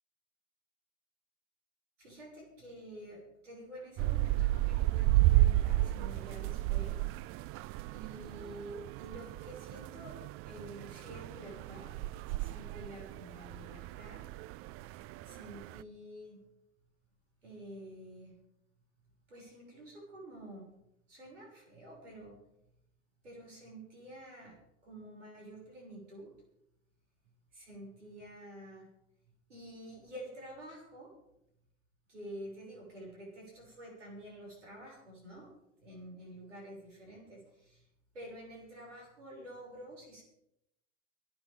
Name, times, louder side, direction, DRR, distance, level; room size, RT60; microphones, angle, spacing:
voice 1, 2.0-7.0 7.9-12.0 12.3-14.2 15.2-16.4 17.4-18.4 19.3-20.7 21.1-22.3 23.2-26.3 27.5-28.9 29.5-31.1 32.1-35.5 35.8-37.9 38.1-40.2, right 1 dB, 90° right, -2 dB, 6.5 m, -49 dB
sound 1, 4.0-15.8, right 16 dB, 40° right, 0.4 m, -32 dB
25.5 x 11.0 x 3.6 m, 0.81 s
hypercardioid pair, 85°, 36 cm